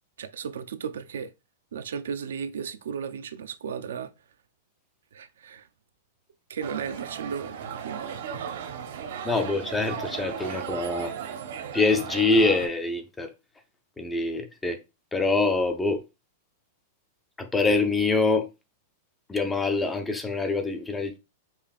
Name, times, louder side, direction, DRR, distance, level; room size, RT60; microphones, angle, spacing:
voice 1, 0.2-1.3 1.7-4.1 5.1-5.7 6.5-9.0 10.5-10.6, right 7 dB, 90° right, 0.4 m, -35 dB
sound 1, 6.6-12.7, right 8 dB, 60° right, 0.7 m, -36 dB
voice 2, 9.2-11.1 11.7-13.3 14.0-14.8 15.1-16.0 17.4-18.5 19.3-21.2, left 3 dB, 5° left, 0.4 m, -25 dB
5.3 x 2.4 x 2.3 m
supercardioid pair, 170°, 0 cm